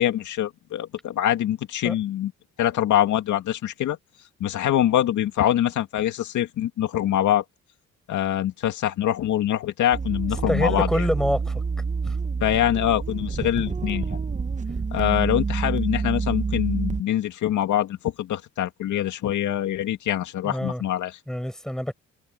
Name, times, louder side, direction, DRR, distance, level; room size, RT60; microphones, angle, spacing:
voice 1, 0.0-2.3 2.6-4.0 4.4-7.4 8.1-11.0 12.4-14.2 14.9-21.2, left 12 dB, 75° left, 2.2 m, -24 dB
sound 1, 9.9-17.0, right 4 dB, 25° right, 1.1 m, -27 dB
voice 2, 10.5-11.6 12.0-12.2 20.4-20.8 21.3-21.9, equal, ahead, 6.7 m, -26 dB
cardioid pair, 90°, 30 cm